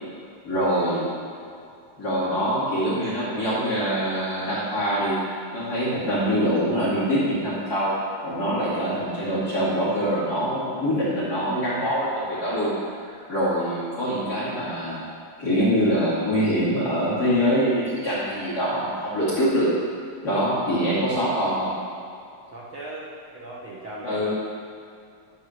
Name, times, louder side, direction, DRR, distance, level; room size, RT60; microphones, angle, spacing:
voice 1, 0.4-1.1 2.0-5.2 5.5-8.0 8.2-12.7 13.3-15.0 15.4-19.7 20.2-21.7 24.0-24.3, equal, 30° left, -11 dB, 2.7 m, -24 dB
voice 2, 22.5-24.3, right 2 dB, 75° right, -5 dB, 1.1 m, -40 dB
11.5 x 4.7 x 6.6 m, 2.5 s
omnidirectional pair, 4.0 m